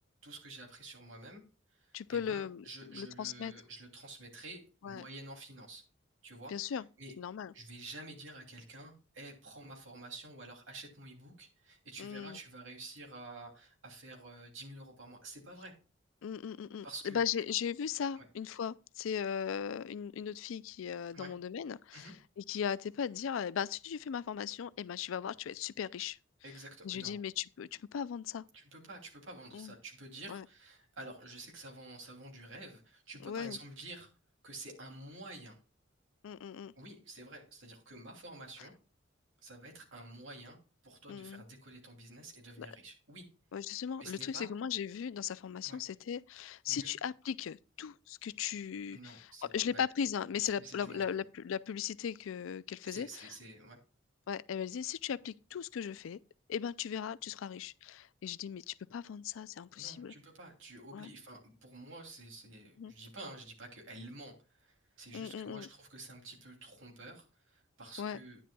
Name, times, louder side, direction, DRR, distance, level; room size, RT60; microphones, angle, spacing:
voice 1, 0.2-1.4 1.8-5.8 6.2-7.1 7.5-15.7 16.8-17.2 18.2-18.3 21.1-21.3 21.9-22.1 26.4-27.1 28.5-34.1 34.4-35.6 36.8-38.7 39.4-40.6 40.8-43.2 43.7-44.5 45.6-45.8 46.7-46.9 48.9-49.9 50.5-51.2 52.9-53.8 59.8-68.4, right 2 dB, 70° right, 2.8 m, -49 dB
voice 2, 1.9-3.5 4.8-5.1 6.5-6.8 7.2-7.5 12.0-12.4 16.2-26.2 26.8-28.4 29.5-29.7 30.3-30.4 33.2-33.6 36.2-36.7 41.1-41.4 42.6-42.7 43.5-53.3 54.3-56.2 56.5-60.1 60.9-61.1 62.8-62.9 65.1-65.7 68.0-68.2, left 8 dB, 85° left, 0.4 m, -38 dB
10.0 x 10.0 x 2.3 m
head